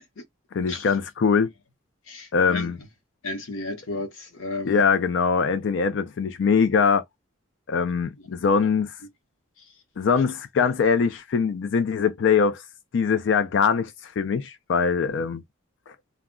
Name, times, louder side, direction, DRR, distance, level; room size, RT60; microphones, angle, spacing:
voice 1, 0.5-1.5 2.3-2.8 4.6-7.0 7.7-9.0 10.0-12.6 12.9-15.4, left 5 dB, 65° left, 0.4 m, -22 dB
voice 2, 2.1-2.7 3.2-4.8 15.1-15.3, left 2 dB, 90° left, 0.8 m, -33 dB
2.2 x 2.1 x 3.5 m
head